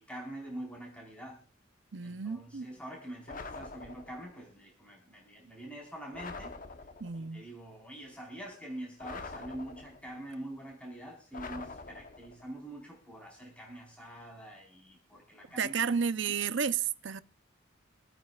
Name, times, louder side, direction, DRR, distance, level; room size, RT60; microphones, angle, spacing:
voice 1, 0.0-1.4 2.0-6.5 7.2-15.7 16.3-16.5, right 1 dB, 5° left, 4.4 m, -45 dB
voice 2, 1.9-2.7 7.0-7.4 15.6-17.2, right 6 dB, 70° right, 0.7 m, -32 dB
sound 1, 3.3-4.3 6.1-7.2 9.0-10.2 11.3-12.4, left 3 dB, 45° left, 1.0 m, -44 dB
26.5 x 9.2 x 2.4 m
head